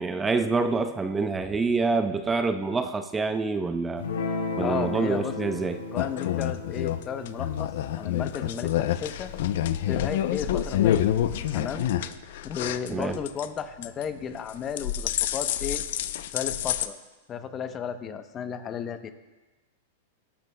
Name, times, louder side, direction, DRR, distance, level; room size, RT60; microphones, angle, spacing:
voice 1, 0.0-4.0 4.6-5.8 12.9-13.2, right 4 dB, 15° right, 8 dB, 0.6 m, -26 dB
Guitar, 4.0-10.6, left 4 dB, 90° left, 4.2 m, -36 dB
voice 2, 4.6-5.3 5.9-7.7 8.0-9.3 9.9-11.1 11.5-11.9 12.4-15.8 16.3-17.0 17.3-19.1, left 7 dB, 30° left, 10 dB, 0.9 m, -34 dB
sound 1, 6.0-13.5 13.8-14.2 14.5-16.9, left 11 dB, 65° left, 0.6 m, -27 dB
19.0 x 12.0 x 2.3 m, 1.2 s
hypercardioid pair, 115°, 0 cm